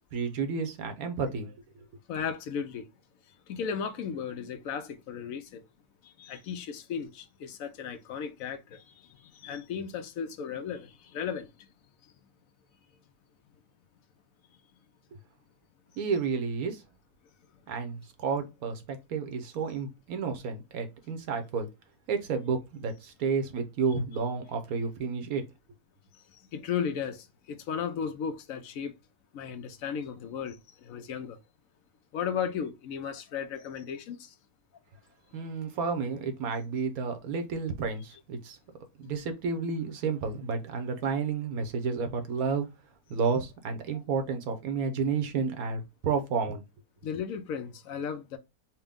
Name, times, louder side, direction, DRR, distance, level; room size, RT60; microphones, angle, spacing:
voice 1, 0.1-1.8 16.0-16.8 17.7-21.7 22.1-25.4 35.3-38.6 39.0-42.7 43.1-46.6, right 5 dB, 85° right, 1.3 m, -31 dB
voice 2, 2.1-2.9 3.5-5.6 6.0-11.7 26.3-28.9 29.3-31.4 32.1-34.3 47.0-48.4, left 7 dB, 75° left, 1.1 m, -35 dB
4.4 x 2.2 x 3.5 m
omnidirectional pair, 1.5 m